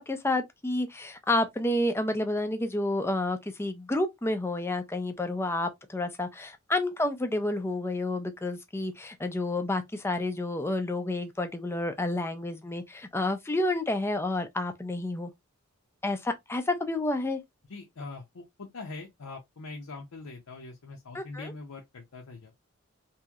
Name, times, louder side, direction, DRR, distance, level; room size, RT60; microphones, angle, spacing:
voice 1, 0.0-15.3 16.0-17.4 21.1-21.5, left 2 dB, 10° left, 0.4 m, -30 dB
voice 2, 17.7-22.5, left 3 dB, 80° left, 0.7 m, -42 dB
3.0 x 2.7 x 2.3 m
head